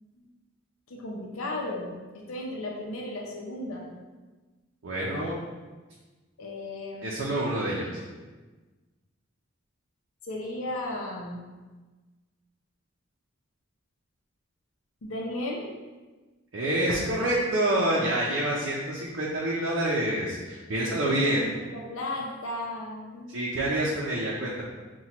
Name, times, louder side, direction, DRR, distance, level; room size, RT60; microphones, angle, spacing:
voice 1, 0.9-3.9 6.4-7.2 10.2-11.4 15.0-15.7 20.8-23.4, left 1 dB, 85° left, -2 dB, 0.6 m, -35 dB
voice 2, 4.8-5.4 7.0-8.0 16.5-21.5 23.3-24.6, right 1 dB, 65° right, -5 dB, 0.5 m, -27 dB
5.7 x 2.2 x 2.9 m, 1.3 s
head